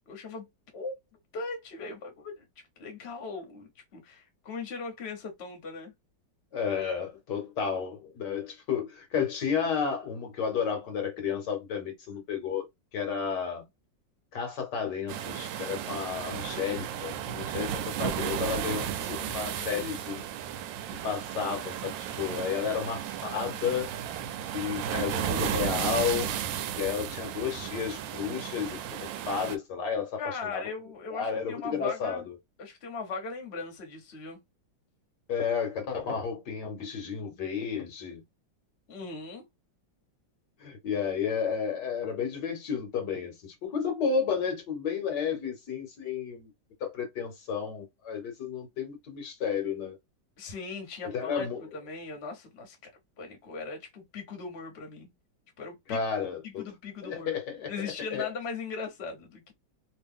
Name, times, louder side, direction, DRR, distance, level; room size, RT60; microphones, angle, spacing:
voice 1, 0.1-0.5 0.7-0.9 1.3-2.4 2.8-5.9 19.6-20.0 30.2-32.2 32.6-34.4 38.9-39.4 50.4-52.9 53.2-55.1 55.6-56.0 56.4-57.4 57.7-59.5, left 4 dB, 40° left, 1.1 m, -39 dB
voice 2, 6.5-12.7 12.9-13.6 14.3-20.2 20.9-23.9 24.5-26.3 26.8-30.7 31.1-32.3 35.3-38.2 40.6-46.5 46.8-50.0 51.0-51.7 55.9-56.7 57.0-58.3, left 6 dB, 70° left, 1.4 m, -32 dB
sound 1, 15.1-29.6, right 10 dB, 85° right, 1.3 m, -34 dB
3.0 x 2.7 x 3.5 m
omnidirectional pair, 2.0 m